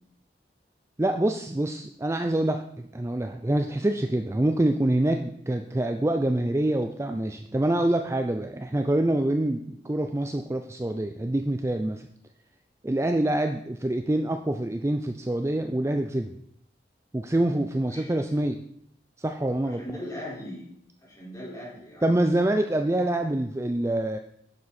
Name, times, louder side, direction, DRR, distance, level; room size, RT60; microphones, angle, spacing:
voice 1, 1.0-12.1 12.8-16.3 17.1-18.6 19.2-19.8 22.0-24.2, right 1 dB, 15° right, 6 dB, 0.4 m, -26 dB
voice 2, 19.6-20.7 21.0-22.2, equal, 20° left, -6 dB, 4.5 m, -39 dB
10.5 x 7.5 x 4.2 m, 0.69 s
head